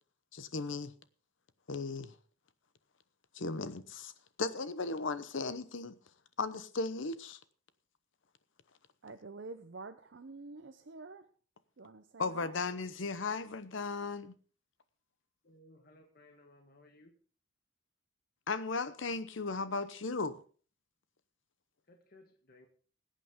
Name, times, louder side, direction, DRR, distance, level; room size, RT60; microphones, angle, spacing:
voice 1, 0.3-0.9 1.7-2.2 3.3-4.1 4.4-6.0 6.4-7.4 12.2-14.3 18.5-20.4, left 3 dB, 70° left, 0.9 m, -36 dB
voice 2, 9.0-11.3 11.8-12.6, right 3 dB, 60° right, 0.7 m, -48 dB
voice 3, 15.4-17.1 21.9-22.7, left 1 dB, 50° left, 1.5 m, -60 dB
20.5 x 8.4 x 3.7 m
head